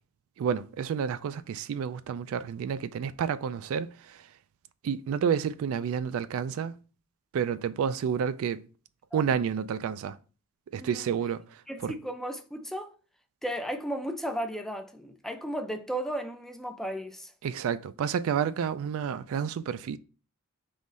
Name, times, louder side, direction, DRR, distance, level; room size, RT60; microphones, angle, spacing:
voice 1, 0.4-4.3 4.8-6.7 7.3-8.6 9.1-10.2 10.7-11.9 17.4-20.0, right 7 dB, 65° right, 0.3 m, -30 dB
voice 2, 10.8-11.1 11.7-12.9 13.4-17.3, right 1 dB, ahead, 0.4 m, -35 dB
3.7 x 3.1 x 4.1 m
head